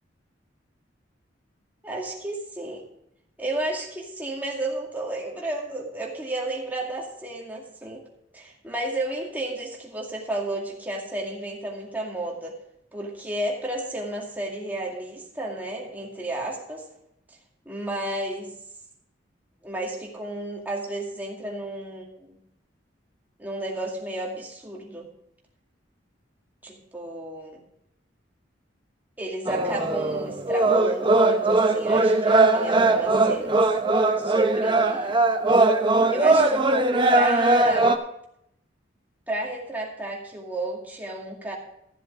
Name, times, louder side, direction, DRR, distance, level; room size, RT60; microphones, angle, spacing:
voice 1, 1.8-2.8 3.4-8.0 8.3-12.6 12.9-16.9 17.3-17.4 17.7-18.5 19.6-22.4 23.4-25.1 26.6-27.6 29.2-33.7 34.2-35.2 36.1-37.9 39.3-41.5, right 1 dB, 10° right, -2 dB, 2.2 m, -32 dB
sound 1, 29.5-38.0, right 2 dB, 25° right, 0.8 m, -20 dB
14.0 x 7.6 x 5.0 m, 0.75 s
head